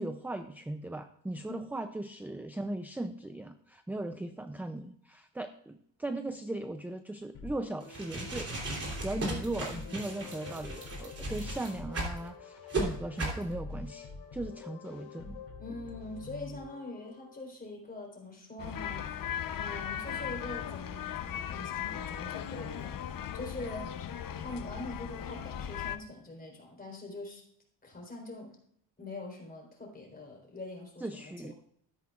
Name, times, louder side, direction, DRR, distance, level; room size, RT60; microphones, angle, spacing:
voice 1, 0.0-8.5 9.0-15.4 31.0-31.5, right 1 dB, 5° right, 8 dB, 0.3 m, -38 dB
sound 1, 7.3-17.4, left 3 dB, 80° left, 2.9 m, -45 dB
sound 2, 7.8-12.2 12.7-12.8 13.2-13.4, right 2 dB, 30° right, 3.3 m, -36 dB
voice 2, 9.2-10.0 15.6-19.1 19.6-23.9 24.4-27.4 27.8-28.6 29.0-31.5, left 2 dB, 20° left, 0 dB, 4.1 m, -43 dB
sound 3, 18.6-26.0, left 9 dB, 50° left, 0.8 m, -38 dB
13.0 x 10.5 x 2.4 m, 0.68 s
cardioid pair, 145°, 44 cm